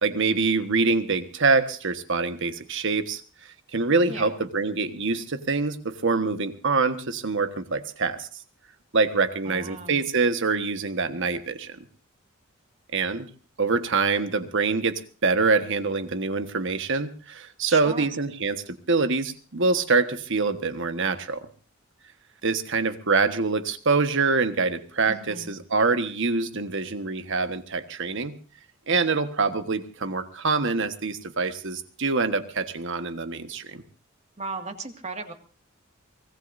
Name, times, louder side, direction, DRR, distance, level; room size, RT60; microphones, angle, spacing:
voice 1, 0.0-3.2 3.7-8.3 8.9-11.8 12.9-13.3 13.6-21.4 22.4-28.4 28.9-33.8, right 4 dB, 60° right, 10 dB, 1.4 m, -25 dB
voice 2, 4.1-4.4 9.4-10.0 17.7-18.1 25.1-25.6 34.4-35.3, right 3 dB, 30° right, 6 dB, 2.0 m, -36 dB
24.0 x 18.0 x 2.7 m, 0.38 s
head